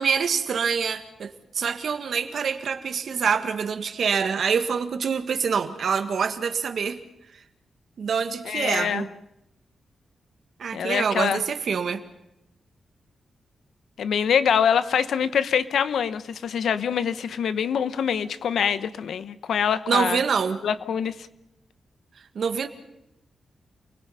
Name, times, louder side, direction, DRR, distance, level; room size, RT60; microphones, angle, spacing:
voice 1, 0.0-7.0 8.0-9.1 10.6-12.0 19.9-20.6 22.3-22.7, right 6 dB, 65° right, 8 dB, 1.6 m, -25 dB
voice 2, 8.5-9.1 10.7-11.4 14.0-20.2 20.6-21.1, left 7 dB, 85° left, 13 dB, 1.0 m, -24 dB
29.0 x 20.5 x 5.7 m, 0.86 s
wide cardioid pair, 150°, 0 cm